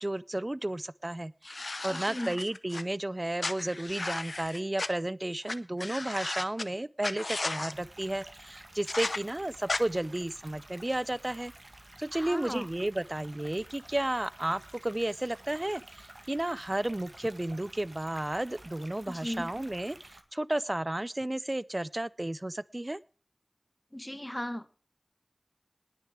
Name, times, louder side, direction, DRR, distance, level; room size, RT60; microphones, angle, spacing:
voice 1, 0.0-11.5 12.0-23.0, right 1 dB, 40° right, 19 dB, 0.6 m, -33 dB
sound 1, 1.4-2.8 3.4-4.9 5.5-5.6 5.8-6.6 7.0-7.7 8.9-9.2 9.7-9.8, left 2 dB, 85° left, 0.7 m, -35 dB
voice 2, 1.9-2.3 12.1-12.7 19.1-19.5 23.9-24.7, left 1 dB, 20° left, 14 dB, 1.1 m, -37 dB
sound 2, 7.7-20.2, right 1 dB, 60° right, 1.9 m, -52 dB
19.5 x 6.7 x 4.8 m, 0.38 s
wide cardioid pair, 40°, 0 cm